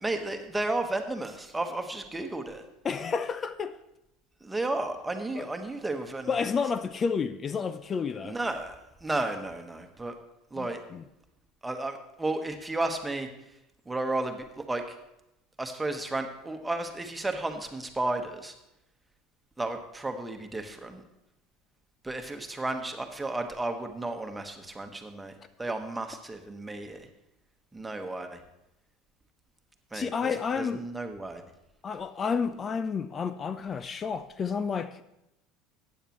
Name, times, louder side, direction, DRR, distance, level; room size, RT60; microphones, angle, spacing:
voice 1, 0.0-2.6 4.4-6.4 8.2-10.1 10.5-10.8 11.6-13.3 13.8-14.9 15.6-18.5 19.6-21.0 22.0-25.3 25.6-27.1 27.7-28.4 29.9-31.4, right 2 dB, 10° right, 1.4 m, -33 dB
voice 2, 2.8-3.7 5.4-5.5 6.3-8.4 10.6-11.0 29.9-30.8 31.8-35.0, left 5 dB, 35° left, 0.5 m, -30 dB
15.0 x 9.3 x 3.1 m
hypercardioid pair, 75°, 0 cm